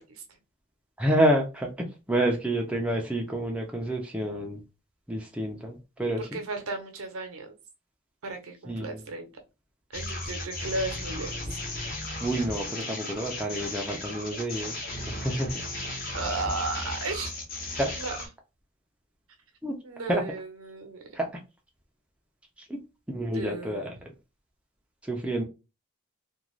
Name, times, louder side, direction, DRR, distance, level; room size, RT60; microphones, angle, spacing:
voice 1, 1.0-4.6 5.1-6.4 8.6-9.0 12.2-14.8 15.1-15.6 17.7-17.9 19.6-19.7 20.1-20.2 21.1-21.3 22.7-22.8 23.1-23.9 25.0-25.4, right 1 dB, 5° right, 0 dB, 0.4 m, -28 dB
voice 2, 6.2-7.5 8.2-9.3 9.9-11.6 16.1-17.3 18.0-18.2 19.8-21.0 23.2-23.9, right 3 dB, 75° right, 5 dB, 0.7 m, -35 dB
sound 1, 9.9-18.3, left 2 dB, 40° left, 0.7 m, -35 dB
2.4 x 2.2 x 3.1 m, 0.29 s
head